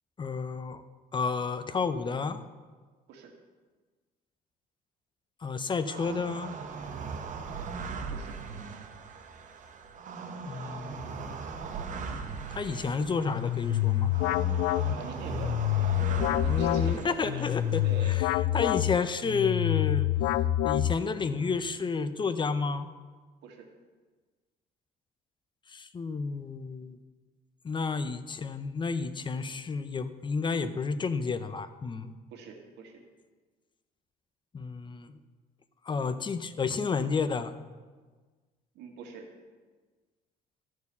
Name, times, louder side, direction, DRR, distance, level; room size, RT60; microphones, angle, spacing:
voice 1, 0.2-0.8 1.1-2.4 5.4-6.5 10.5-11.4 12.5-14.1 16.5-17.8 18.5-22.9 25.7-27.0 27.6-32.1 34.5-35.2 35.8-37.5, left 5 dB, 30° left, 12 dB, 0.7 m, -31 dB
sound 1, 5.9-18.2, right 4 dB, 50° right, 1.1 m, -39 dB
sound 2, 13.2-21.3, left 13 dB, 85° left, 0.4 m, -27 dB
voice 2, 14.8-17.5 17.8-18.3 23.4-23.7 32.3-33.0 38.7-39.3, right 4 dB, 85° right, 2 dB, 1.9 m, -43 dB
13.0 x 4.7 x 8.3 m, 1.4 s
cardioid pair, 110°, 17 cm